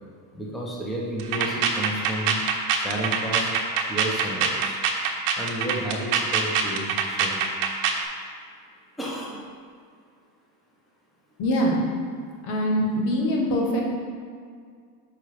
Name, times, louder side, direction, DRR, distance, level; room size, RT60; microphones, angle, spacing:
voice 1, 0.3-2.4 2.7-3.5 3.9-4.8 5.4-7.4 9.0-9.4, right 1 dB, ahead, -4 dB, 1.0 m, -31 dB
sound 1, 1.2-8.0, right 6 dB, 55° right, 1.0 m, -24 dB
voice 2, 11.4-11.8 12.4-13.8, equal, 60° left, -2 dB, 1.7 m, -23 dB
6.0 x 4.9 x 5.1 m, 2.1 s
supercardioid pair, 115°, 49 cm